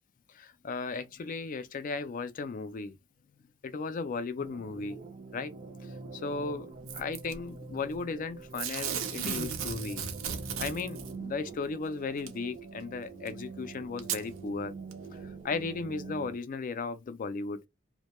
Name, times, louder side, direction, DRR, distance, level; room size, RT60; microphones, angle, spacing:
voice 1, 0.6-2.9 3.6-5.0 5.3-5.5 6.2-6.7 6.9-10.0 10.6-14.7 15.4-17.6, left 4 dB, 40° left, 0.3 m, -35 dB
sound 1, 4.4-16.4, right 4 dB, 40° right, 0.6 m, -45 dB
Packing tape duct tape / Tearing, 6.9-7.3 8.5-11.1 12.3-12.4 13.3-13.4 14.0-14.2 14.9-15.0, right 7 dB, 80° right, 0.6 m, -35 dB
2.2 x 2.1 x 2.9 m
head